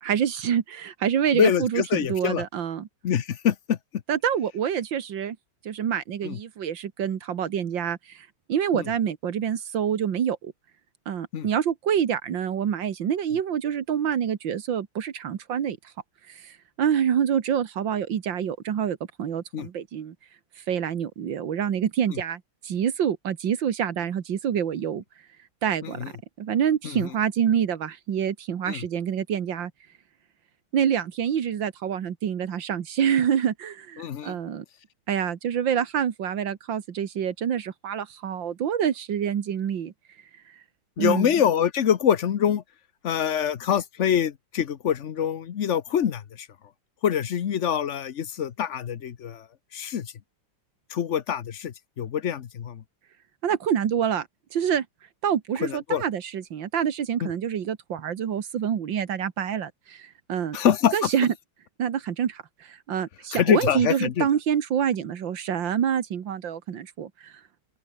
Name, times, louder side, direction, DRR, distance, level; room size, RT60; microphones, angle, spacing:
voice 1, 0.0-2.9 4.1-5.4 5.6-10.5 11.1-15.8 16.3-20.2 20.7-25.0 25.6-26.0 26.4-29.7 30.7-34.6 35.1-39.9 41.0-41.3 53.4-54.9 55.2-60.6 60.9-61.3 61.8-67.3, right 8 dB, 85° right, 2.2 m, -27 dB
voice 2, 1.3-2.4 3.0-3.8 6.2-6.4 8.7-8.8 11.3-11.5 19.5-19.7 25.8-26.1 26.8-27.1 28.7-28.8 34.0-34.3 41.0-42.6 43.0-46.5 47.0-49.5 49.7-50.1 50.9-52.8 55.6-56.0 57.2-57.3 60.5-61.1 63.3-64.3, left 9 dB, 50° left, 1.0 m, -25 dB
open air
omnidirectional pair, 2.0 m